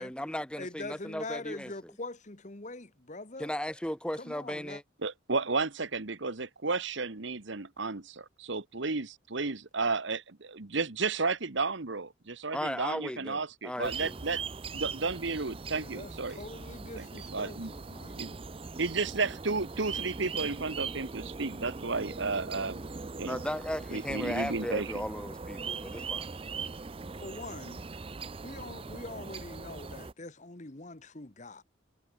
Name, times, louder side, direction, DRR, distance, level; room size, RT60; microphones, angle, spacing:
voice 1, 0.0-1.9 3.4-4.8 12.5-14.2 23.2-26.3, left 1 dB, 5° left, 1.4 m, -36 dB
voice 2, 0.6-3.5 4.2-4.8 15.8-18.2 27.2-27.8 28.4-31.6, left 2 dB, 35° left, 1.4 m, -43 dB
voice 3, 5.0-14.4 14.7-16.4 16.9-17.7 18.2-18.4 18.8-22.8 23.2-23.4 23.9-25.0, right 4 dB, 65° right, 1.4 m, -33 dB
sound 1, 13.8-30.1, right 4 dB, 25° right, 0.5 m, -40 dB
head